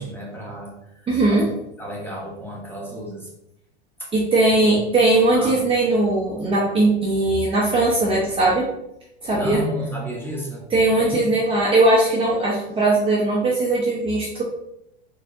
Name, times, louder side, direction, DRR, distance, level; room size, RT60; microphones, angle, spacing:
voice 1, 0.0-1.4 1.8-3.3 4.0-4.1 4.6-4.7 5.3-5.7 9.3-10.6 11.0-11.2, equal, 5° left, -3 dB, 1.3 m, -32 dB
voice 2, 1.1-1.4 4.1-8.7 9.2-9.6 10.7-14.4, right 2 dB, 15° right, -5 dB, 0.8 m, -19 dB
4.3 x 3.2 x 2.6 m, 0.81 s
hypercardioid pair, 100°, 31 cm